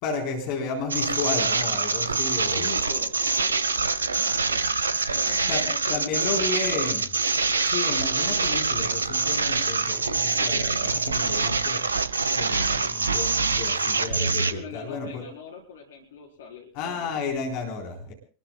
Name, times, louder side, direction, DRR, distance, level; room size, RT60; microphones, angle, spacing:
voice 1, 0.0-2.7 5.5-7.1 7.6-11.9 12.3-15.3 16.7-18.1, left 4 dB, 45° left, 2 dB, 4.1 m, -32 dB
sound 1, 0.9-14.5, right 4 dB, 75° right, 1.1 m, -25 dB
voice 2, 2.5-6.9 14.4-17.2, left 6 dB, 60° left, 2 dB, 4.5 m, -42 dB
26.5 x 20.5 x 2.3 m, 0.38 s
figure-of-eight pair, 90°, 0 cm